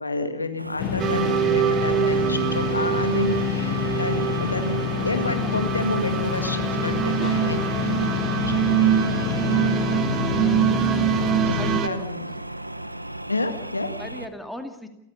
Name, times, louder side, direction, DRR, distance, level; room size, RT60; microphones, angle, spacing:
voice 1, 0.0-8.4 8.8-10.0 10.8-11.1 11.4-12.2 13.3-13.9, left 2 dB, 80° left, 7 dB, 2.0 m, -30 dB
sound 1, 0.6-14.3, right 1 dB, 85° right, 0.8 m, -36 dB
sound 2, 0.8-11.8, left 13 dB, 30° left, 0.7 m, -28 dB
sound 3, 1.0-11.9, right 10 dB, 30° right, 1.6 m, -24 dB
voice 2, 11.4-12.4 14.0-14.9, equal, ahead, 6 dB, 2.3 m, -38 dB
29.0 x 15.0 x 6.9 m, 0.88 s
figure-of-eight pair, 90°, 0 cm